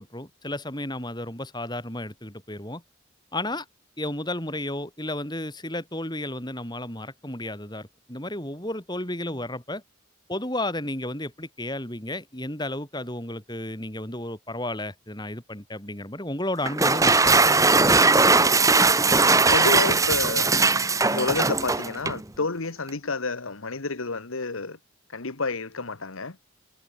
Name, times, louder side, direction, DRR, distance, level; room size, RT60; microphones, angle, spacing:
voice 1, 0.0-2.8 3.3-3.7 4.0-9.8 10.3-17.5, left 1 dB, 20° left, 6.9 m, -33 dB
sound 1, 16.6-22.2, right 3 dB, 15° right, 1.3 m, -19 dB
voice 2, 19.5-20.5 21.1-24.8 25.1-26.4, left 3 dB, 80° left, 1.6 m, -29 dB
head